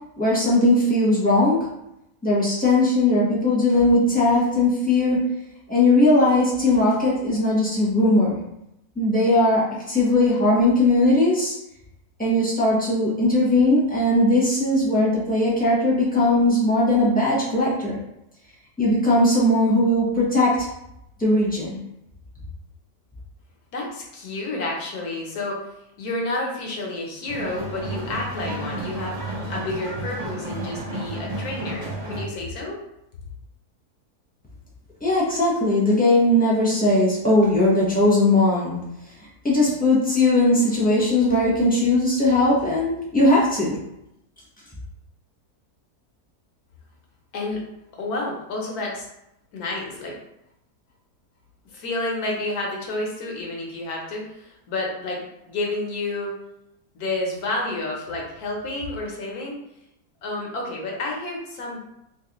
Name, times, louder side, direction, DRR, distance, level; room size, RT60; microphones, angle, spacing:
voice 1, 0.2-1.6 2.2-5.2 5.7-8.4 9.0-11.5 12.2-18.0 18.8-20.7 21.2-21.8 35.0-38.7 39.4-43.7, left 1 dB, 5° left, -7 dB, 0.9 m, -19 dB
voice 2, 23.7-25.6 26.0-32.8 47.3-47.6 47.9-49.1 49.5-50.2 51.7-56.3 56.9-59.5 60.2-61.8, left 2 dB, 75° left, -1 dB, 1.3 m, -30 dB
sound 1, 27.3-32.2, right 1 dB, 50° right, 1.3 m, -32 dB
3.3 x 3.0 x 3.0 m, 0.83 s
omnidirectional pair, 1.7 m